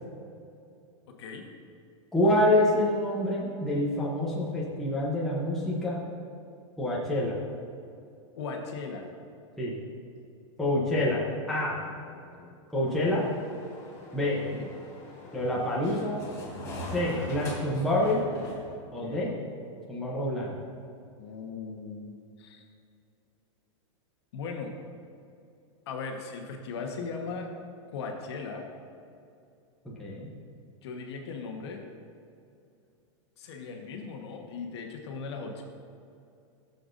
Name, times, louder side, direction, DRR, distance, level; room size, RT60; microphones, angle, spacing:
voice 1, 1.1-1.5 8.4-9.1 10.9-12.6 14.4-14.7 19.0-19.3 21.2-22.6 24.3-24.7 25.9-27.5 27.9-28.7 30.8-31.8 33.4-35.6, left 4 dB, 55° left, 2 dB, 1.2 m, -39 dB
voice 2, 2.1-6.0 6.8-7.3 9.6-9.7 10.6-11.2 11.5-11.8 12.7-13.2 14.1-14.4 15.3-16.2 16.9-18.2 18.9-19.3 19.9-20.6 29.8-30.3, left 1 dB, ahead, -6 dB, 0.8 m, -27 dB
sound 1, 12.9-18.7, left 1 dB, 20° left, 1.5 m, -42 dB
15.0 x 6.8 x 2.6 m, 2.6 s
supercardioid pair, 180°, 17 cm